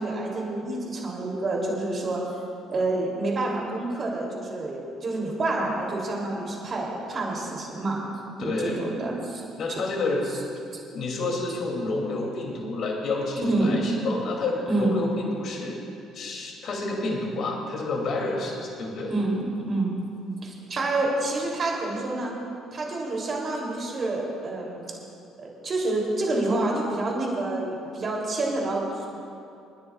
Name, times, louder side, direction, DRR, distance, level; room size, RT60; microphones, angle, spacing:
voice 1, 0.0-2.2 2.7-8.0 8.4-9.4 13.4-13.8 14.7-14.9 19.1-19.9 20.4-22.3 22.7-24.8 25.4-29.1, right 2 dB, 40° right, -2 dB, 3.1 m, -28 dB
voice 2, 8.4-8.8 9.6-10.3 10.8-15.8 16.1-19.1, left 2 dB, 55° left, 0 dB, 2.8 m, -29 dB
29.0 x 10.0 x 2.4 m, 2.6 s
hypercardioid pair, 55°, 0 cm